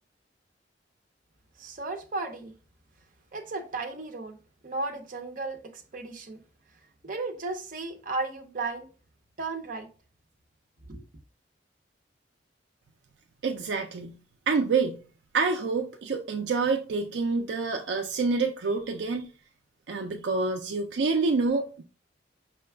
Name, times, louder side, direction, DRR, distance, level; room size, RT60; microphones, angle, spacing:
voice 1, 1.6-2.5 3.3-4.4 4.6-6.4 7.0-8.9 9.4-9.9 10.9-11.0, right 3 dB, 50° right, 0.7 m, -34 dB
voice 2, 13.4-14.2 14.5-15.0 15.3-19.3 19.9-21.8, right 4 dB, 70° right, 0.4 m, -27 dB
5.6 x 2.3 x 3.3 m
head